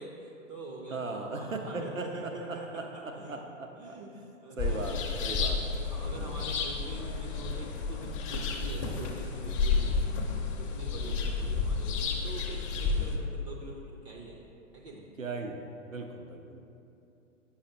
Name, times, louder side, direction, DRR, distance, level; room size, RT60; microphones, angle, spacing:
voice 1, 0.0-3.4 3.8-5.2 5.8-10.2 10.6-14.4 14.7-15.1, right 1 dB, 25° right, -1 dB, 0.5 m, -44 dB
voice 2, 0.9-4.0 4.6-5.6 6.1-6.5 9.8-10.0 11.0-11.2 13.0-13.2 15.2-16.6, right 3 dB, 85° right, 3 dB, 0.7 m, -39 dB
sound 1, 4.6-13.2, left 4 dB, 25° left, 0.6 m, -31 dB
8.4 x 5.6 x 3.0 m, 2.7 s
figure-of-eight pair, 105°, 38 cm